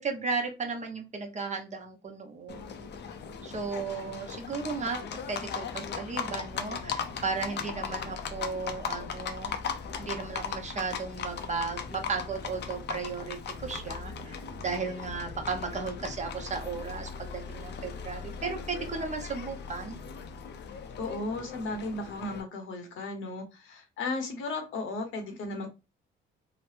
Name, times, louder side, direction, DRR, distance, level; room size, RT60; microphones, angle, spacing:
voice 1, 0.0-2.8 3.4-5.0 5.3-9.5 10.0-20.0, right 4 dB, 35° right, 0.9 m, -35 dB
Livestock farm animals working animals, 2.5-22.4, left 6 dB, 60° left, 0.5 m, -38 dB
voice 2, 21.0-25.7, left 2 dB, 80° left, 0.9 m, -35 dB
2.9 x 2.1 x 3.1 m
cardioid pair, 90°, 20 cm